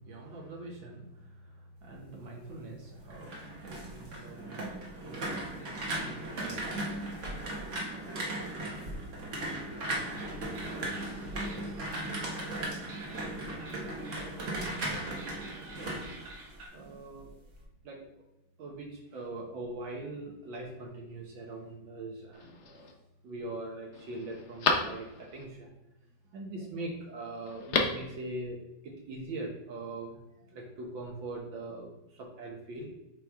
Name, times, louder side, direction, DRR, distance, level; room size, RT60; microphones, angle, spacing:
voice 1, 0.0-10.7 11.1-12.3 13.5-16.0 16.7-17.3 17.8-18.0 18.6-23.0 23.2-25.7 26.3-32.9, right 2 dB, 70° right, -1 dB, 1.7 m, -44 dB
sound 1, 2.9-16.9 17.3-17.6, right 1 dB, 45° right, 1.2 m, -37 dB
sound 2, 10.1-16.7, right 2 dB, 90° right, 2.3 m, -50 dB
Telephone, 22.3-22.9 23.4-23.5 23.9-25.4 27.5-28.1 28.4-28.5, left 4 dB, 85° left, 0.6 m, -32 dB
8.6 x 3.3 x 3.5 m, 0.93 s
omnidirectional pair, 2.2 m